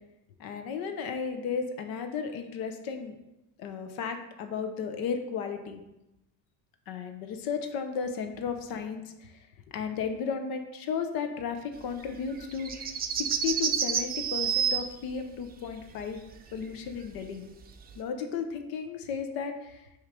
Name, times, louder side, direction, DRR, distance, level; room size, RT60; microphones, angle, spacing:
voice 1, 0.4-3.2 3.6-5.8 6.9-9.4 9.7-12.9 13.2-16.2 16.5-17.5 18.0-20.0, left 6 dB, 85° left, 6 dB, 0.8 m, -34 dB
sound 1, 12.1-14.8 16.9-17.0 17.9-18.0, right 8 dB, 25° right, 0.5 m, -28 dB
6.4 x 3.2 x 5.0 m, 0.91 s
cardioid pair, 140°, 35 cm